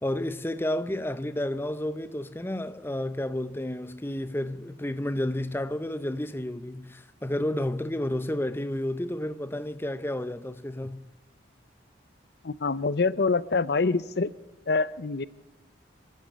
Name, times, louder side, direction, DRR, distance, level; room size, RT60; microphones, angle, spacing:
voice 1, 0.0-11.0, left 1 dB, 10° left, 0.7 m, -31 dB
voice 2, 12.4-14.3 14.7-15.3, left 4 dB, 55° left, 0.6 m, -25 dB
25.5 x 12.0 x 8.7 m
head